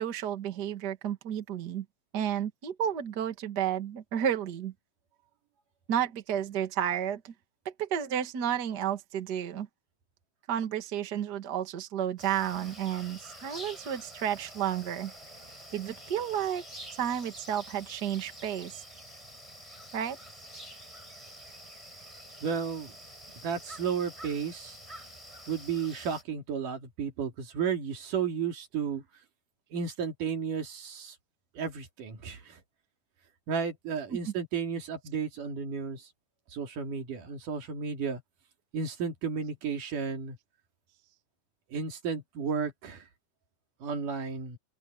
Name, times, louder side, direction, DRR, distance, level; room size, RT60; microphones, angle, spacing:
voice 1, 0.0-1.9 2.1-4.7 5.9-7.3 7.7-9.7 10.5-15.1 15.7-16.6 17.0-18.8 19.9-20.2 34.1-34.3, right 9 dB, 40° right, 1.8 m, -32 dB
sound 1, 12.2-26.2, equal, 10° right, 5.5 m, -48 dB
voice 2, 22.4-23.0 23.4-24.8 25.5-29.0 29.7-31.2 31.6-32.6 33.5-36.1 36.5-38.2 38.7-40.4 41.7-43.0 43.8-44.6, right 6 dB, 80° right, 4.2 m, -33 dB
open air
omnidirectional pair, 3.6 m